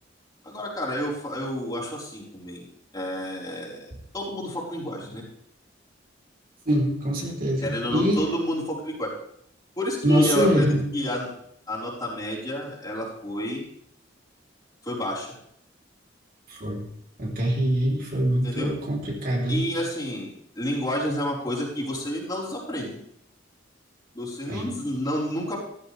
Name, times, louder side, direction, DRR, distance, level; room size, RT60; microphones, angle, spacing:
voice 1, 0.4-2.7 2.9-5.2 7.6-9.1 9.7-11.3 11.7-13.6 14.8-15.3 18.4-18.7 19.5-23.0 24.1-25.6, equal, 20° left, -6 dB, 4.8 m, -30 dB
voice 2, 6.7-8.3 10.0-10.8 16.5-16.8 17.2-19.6 24.5-24.7, equal, 50° right, -2 dB, 3.6 m, -24 dB
15.5 x 14.5 x 3.5 m, 0.72 s
head